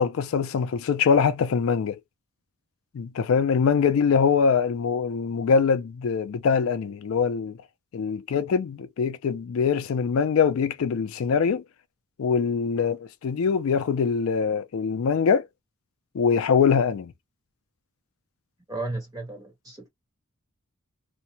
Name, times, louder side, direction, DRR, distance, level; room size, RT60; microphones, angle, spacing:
voice 1, 0.0-2.0 2.9-7.6 7.9-11.6 12.2-15.5 16.1-17.1, left 6 dB, 65° left, 0.3 m, -23 dB
voice 2, 18.7-19.9, right 2 dB, 15° right, 1.2 m, -34 dB
2.6 x 2.1 x 2.7 m
head